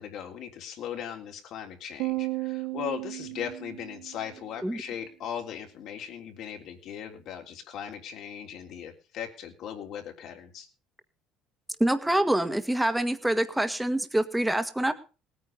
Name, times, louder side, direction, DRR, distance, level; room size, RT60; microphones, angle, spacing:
voice 1, 0.0-10.7, left 8 dB, 60° left, 3 dB, 3.4 m, -38 dB
sound 1, 2.0-4.4, right 22 dB, 80° right, 2.6 m, -34 dB
voice 2, 11.8-14.9, right 1 dB, 5° right, 9 dB, 1.6 m, -25 dB
19.0 x 9.5 x 5.3 m, 0.35 s
cardioid pair, 135°, 0 cm